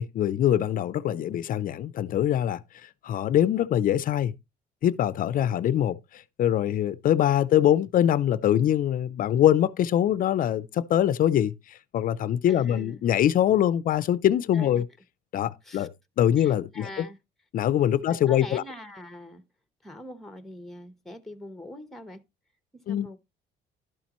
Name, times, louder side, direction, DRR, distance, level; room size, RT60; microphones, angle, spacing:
voice 1, 0.0-2.6 3.0-4.3 4.8-14.8 15.3-15.9 16.2-17.0 17.5-18.6 22.9-23.1, left 11 dB, 55° left, 0.5 m, -23 dB
voice 2, 12.5-13.0 14.5-14.8 15.6-15.9 16.4-17.2 18.1-19.4 19.8-22.2 22.7-23.2, left 1 dB, ahead, 1.0 m, -43 dB
12.0 x 7.1 x 3.0 m
cardioid pair, 110°, 17 cm